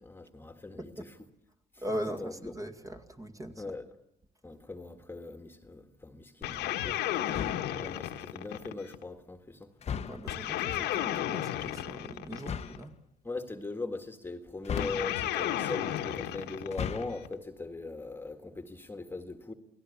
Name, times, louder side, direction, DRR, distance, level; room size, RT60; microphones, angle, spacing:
voice 1, 0.0-1.0 2.2-2.5 3.6-3.8 4.4-7.4 7.8-9.7 13.2-19.5, left 3 dB, 15° left, 1.9 m, -40 dB
voice 2, 0.8-1.1 1.8-3.8 10.1-13.0, equal, 20° right, 2.1 m, -40 dB
sound 1, 6.4-9.0 10.3-12.8 14.8-17.3, left 12 dB, 80° left, 1.6 m, -33 dB
sound 2, 7.3-7.8 9.8-10.4 12.4-12.9 14.6-15.4 16.6-17.3, left 7 dB, 40° left, 1.1 m, -37 dB
29.0 x 18.5 x 8.6 m
cardioid pair, 110°, 17 cm